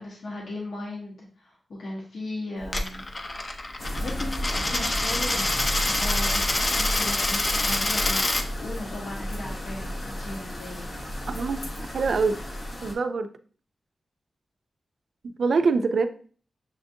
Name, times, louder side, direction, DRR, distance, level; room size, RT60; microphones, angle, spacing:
voice 1, 0.0-3.0 4.0-8.3 8.6-10.9, left 2 dB, 80° left, -3 dB, 0.9 m, -37 dB
Coin (dropping), 2.6-8.4, left 2 dB, 30° left, 0.4 m, -26 dB
sound 1, 3.8-12.9, equal, 50° left, 0.8 m, -33 dB
voice 2, 11.3-11.6 11.9-12.4 12.8-13.3 15.4-16.1, right 4 dB, 70° right, 9 dB, 0.3 m, -24 dB
6.7 x 2.5 x 2.6 m, 0.44 s
wide cardioid pair, 175°, 0 cm